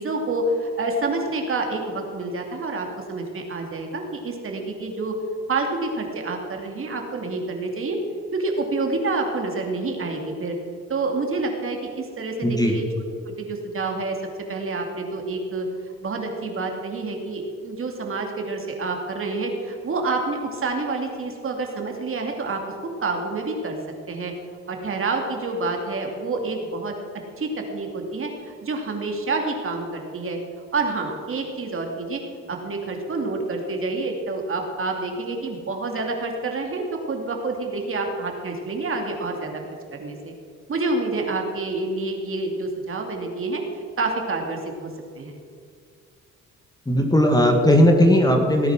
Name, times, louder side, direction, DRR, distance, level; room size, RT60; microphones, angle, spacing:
voice 1, 0.0-5.1 5.5-8.0 8.3-10.6 10.9-12.8 13.3-14.2 14.5-15.7 16.0-22.6 23.0-23.8 24.1-24.3 24.7-26.9 27.4-30.4 30.7-32.2 32.5-39.5 39.9-40.3 40.7-44.9 45.2-45.3, right 3 dB, 45° right, 2 dB, 2.6 m, -28 dB
voice 2, 12.4-12.7 46.9-48.7, equal, 15° left, 3 dB, 2.0 m, -17 dB
17.5 x 9.4 x 6.1 m, 2.2 s
cardioid pair, 90°, 30 cm